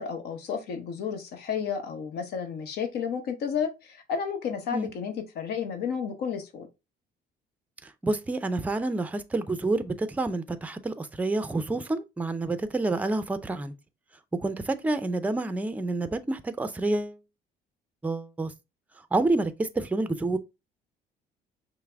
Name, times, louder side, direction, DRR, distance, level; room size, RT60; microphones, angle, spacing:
voice 1, 0.0-6.7, left 7 dB, 75° left, 0.9 m, -32 dB
voice 2, 7.8-13.7 14.4-17.2 18.0-18.5 19.1-20.4, right 2 dB, 10° right, 0.4 m, -28 dB
5.6 x 2.0 x 3.4 m
cardioid pair, 110°, 17 cm